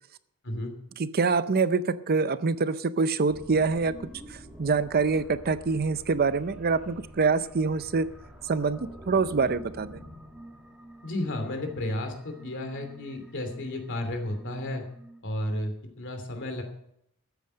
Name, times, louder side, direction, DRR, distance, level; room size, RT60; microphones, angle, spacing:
voice 1, 1.0-3.9 4.3-8.1 8.5-10.0, right 4 dB, 45° right, 14 dB, 0.6 m, -25 dB
sound 1, 3.3-15.2, equal, 5° right, 2.3 m, -47 dB
voice 2, 11.0-14.8 15.2-15.7 16.0-16.6, left 1 dB, 55° left, 5 dB, 2.9 m, -32 dB
13.5 x 9.1 x 6.5 m, 0.74 s
head